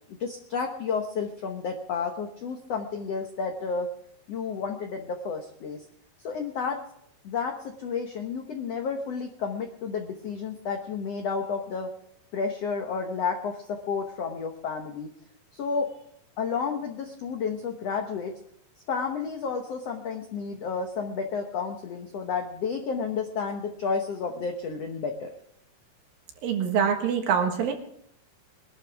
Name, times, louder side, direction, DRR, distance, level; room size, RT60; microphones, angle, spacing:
voice 1, 0.1-3.9 4.3-5.8 6.2-6.8 7.2-11.9 12.3-15.1 15.5-15.9 16.4-18.3 18.9-25.3, left 5 dB, 85° left, 4 dB, 1.4 m, -31 dB
voice 2, 26.4-27.7, right 7 dB, 70° right, 4 dB, 3.1 m, -24 dB
22.5 x 12.0 x 3.5 m, 0.68 s
omnidirectional pair, 4.6 m